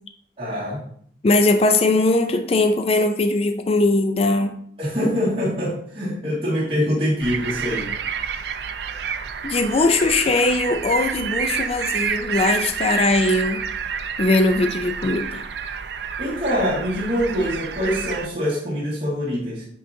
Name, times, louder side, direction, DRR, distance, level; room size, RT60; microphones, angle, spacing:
voice 1, 0.4-0.8 4.8-7.9 16.2-19.6, equal, 35° right, -9 dB, 1.9 m, -24 dB
voice 2, 1.2-4.6 9.4-13.6 14.2-15.4, left 2 dB, 35° left, 7 dB, 0.4 m, -20 dB
sound 1, 7.2-18.3, right 7 dB, 70° right, 0.4 m, -29 dB
9.5 x 3.9 x 2.7 m, 0.64 s
head